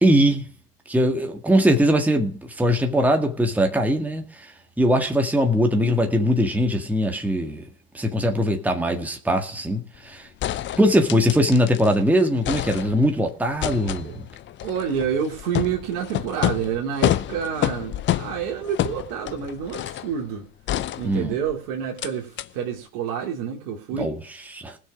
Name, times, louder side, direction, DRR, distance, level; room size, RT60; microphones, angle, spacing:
voice 1, 0.0-0.5 0.9-7.6 7.9-10.3 10.8-14.2 21.0-21.3 24.0-24.2 24.5-24.8, equal, 5° right, 1.8 m, -21 dB
sound 1, 9.9-10.0 10.4-12.0 12.2-13.2 13.6-20.1 20.7-21.5 22.0-22.1 22.4-22.5, left 12 dB, 25° left, 0.7 m, -28 dB
voice 2, 14.6-20.5 21.0-24.1, right 8 dB, 50° right, 2.8 m, -28 dB
19.5 x 6.7 x 5.0 m
hypercardioid pair, 95°, 46 cm